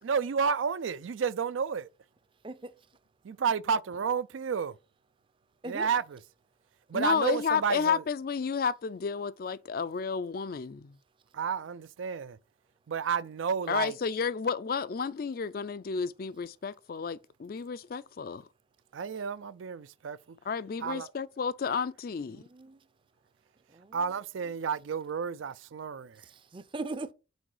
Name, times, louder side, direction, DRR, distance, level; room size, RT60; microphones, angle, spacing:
voice 1, 0.0-1.9 3.2-4.7 5.6-6.2 6.9-8.0 11.3-12.4 12.9-13.9 18.9-20.2 20.8-21.1 23.9-26.2, right 6 dB, 85° right, 0.4 m, -31 dB
voice 2, 2.4-2.7 5.6-5.9 22.3-22.8 23.7-24.1 26.2-27.1, right 3 dB, 25° right, 0.5 m, -40 dB
voice 3, 6.9-10.9 13.7-18.5 20.4-22.4, left 6 dB, 50° left, 0.4 m, -31 dB
6.2 x 4.6 x 4.8 m
head